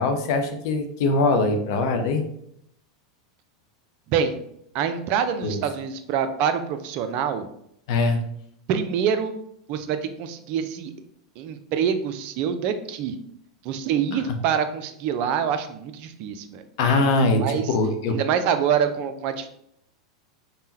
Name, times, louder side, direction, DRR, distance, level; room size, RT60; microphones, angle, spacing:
voice 1, 0.0-2.2 5.4-5.6 7.9-8.2 14.1-14.4 16.8-18.2, left 3 dB, 55° left, 6 dB, 0.5 m, -22 dB
voice 2, 4.7-7.4 8.7-9.4 9.7-10.9 11.4-13.2 13.6-16.6 17.3-17.7 18.1-19.5, right 7 dB, 50° right, 9 dB, 0.4 m, -25 dB
3.5 x 2.1 x 2.7 m, 0.72 s
hypercardioid pair, 90°, 3 cm